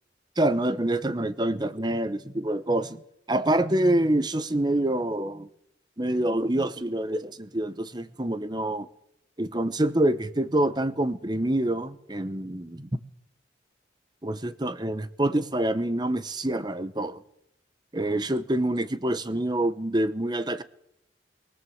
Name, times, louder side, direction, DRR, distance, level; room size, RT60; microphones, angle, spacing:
voice 1, 0.4-3.0 3.3-5.5 6.0-8.9 9.4-12.9 14.2-17.2 17.9-20.6, right 1 dB, 25° right, 1.0 m, -26 dB
23.5 x 17.5 x 8.0 m
head